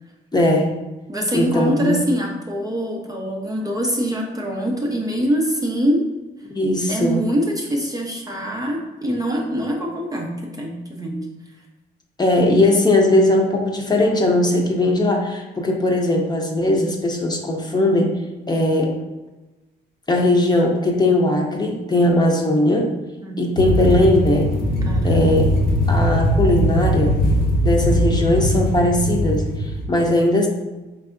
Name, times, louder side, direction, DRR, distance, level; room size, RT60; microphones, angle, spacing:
voice 1, 0.3-0.7 1.3-1.9 6.5-7.2 12.2-18.1 18.5-19.0 20.1-22.9 23.4-24.5 25.0-25.5 25.9-27.2 27.6-30.5, left 1 dB, 20° left, 0 dB, 0.7 m, -19 dB
voice 2, 1.1-6.1 6.9-11.3 23.2-23.6 24.7-25.4, equal, 20° right, 0 dB, 0.6 m, -24 dB
sound 1, 23.6-29.9, equal, 50° left, 0.9 m, -20 dB
4.7 x 3.3 x 2.5 m, 1.1 s
cardioid pair, 90°, 20 cm